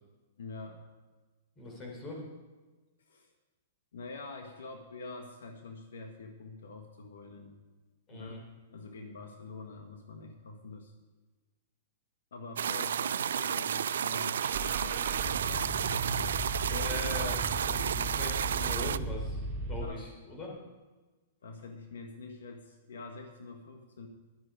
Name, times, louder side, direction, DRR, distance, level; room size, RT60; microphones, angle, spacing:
voice 1, 0.4-0.8 3.1-3.3 3.9-7.6 8.1-10.9 12.3-16.4 19.8-20.1 21.4-24.1, left 3 dB, 85° left, 4 dB, 1.4 m, -46 dB
voice 2, 1.6-2.3 8.1-8.4 16.7-20.5, left 2 dB, 25° left, -1 dB, 3.7 m, -41 dB
sound 1, 12.6-19.0, right 8 dB, 80° right, 0.3 m, -32 dB
Car / Engine starting, 14.4-19.8, right 2 dB, 35° right, 1.4 m, -37 dB
11.0 x 10.0 x 4.9 m, 1.3 s
hypercardioid pair, 135°, 0 cm